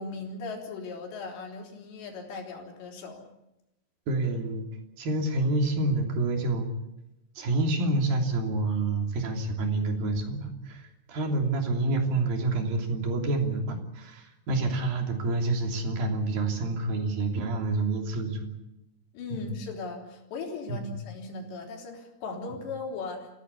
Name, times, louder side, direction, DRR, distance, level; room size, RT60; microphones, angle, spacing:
voice 1, 0.0-3.2 19.1-23.3, left 3 dB, 80° left, 1 dB, 5.7 m, -38 dB
voice 2, 4.1-4.7 5.0-6.7 7.4-18.5 19.3-19.5 20.7-20.9 22.5-22.6, right 2 dB, 60° right, 3 dB, 4.7 m, -28 dB
28.0 x 16.5 x 8.5 m, 0.92 s
omnidirectional pair, 4.9 m